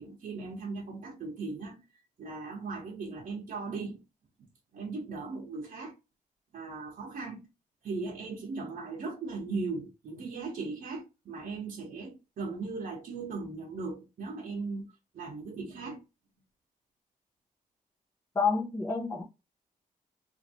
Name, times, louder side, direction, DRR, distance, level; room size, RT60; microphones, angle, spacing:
voice 1, 0.0-1.8 2.2-4.0 4.4-4.5 4.7-5.9 6.5-7.4 7.8-16.0, right 3 dB, 65° right, 0.9 m, -38 dB
voice 2, 18.3-19.2, left 4 dB, 20° left, 0.6 m, -28 dB
3.2 x 2.6 x 2.9 m
wide cardioid pair, 170°, 15 cm